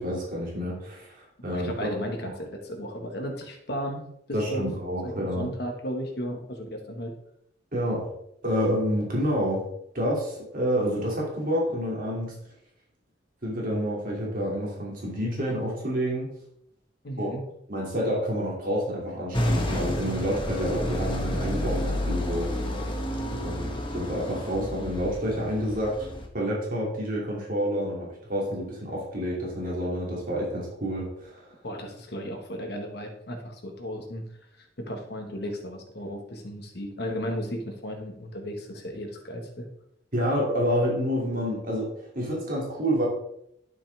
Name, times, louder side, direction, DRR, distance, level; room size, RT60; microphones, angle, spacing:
voice 1, 0.0-1.9 2.2-2.3 4.3-5.5 7.7-8.1 8.4-9.6 9.9-12.3 13.4-16.3 17.2-17.3 17.7-22.5 23.3-26.1 26.3-31.5 40.1-41.9 42.1-43.1, equal, 45° right, -3 dB, 2.9 m, -28 dB
voice 2, 1.5-4.0 4.3-4.7 5.0-7.1 17.0-17.4 31.6-34.2 34.6-39.7, equal, 55° left, 2 dB, 1.7 m, -35 dB
sound 1, 19.3-26.3, equal, 25° left, 1.5 m, -30 dB
12.0 x 7.1 x 3.6 m, 0.74 s
head